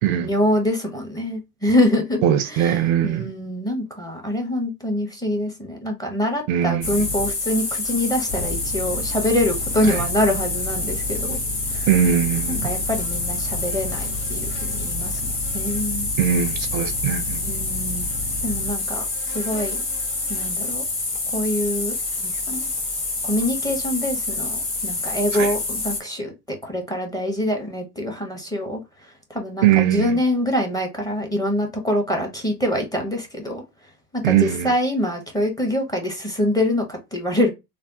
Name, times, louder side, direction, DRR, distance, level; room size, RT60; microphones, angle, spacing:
voice 1, 0.2-2.2 2.5-2.8 3.0-11.4 11.7-11.9 12.5-15.2 15.5-16.1 17.4-18.0 18.4-19.0 19.3-19.8 20.3-20.8 21.3-21.9 22.2-22.7 23.2-28.8 29.3-33.6 34.1-37.5, left 1 dB, 10° left, 0.9 m, -25 dB
voice 2, 2.2-3.3 6.5-7.1 9.8-10.1 11.9-12.7 16.2-17.4 25.3-25.5 29.6-30.2 34.2-34.7, right 10 dB, 60° right, 0.6 m, -21 dB
sound 1, 6.8-26.0, left 2 dB, 25° left, 1.4 m, -27 dB
3.3 x 2.0 x 2.8 m
hypercardioid pair, 90°, 47 cm